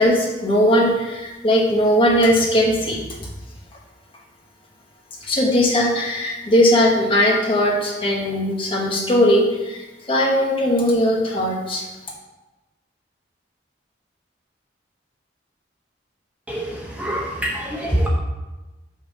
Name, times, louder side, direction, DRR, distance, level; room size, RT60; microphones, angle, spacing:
voice 1, 0.0-3.0 5.2-11.8, equal, 30° left, -2 dB, 1.2 m, -19 dB
voice 2, 16.5-18.1, right 1 dB, 10° right, -3 dB, 0.8 m, -25 dB
5.6 x 4.6 x 6.2 m, 1.1 s
head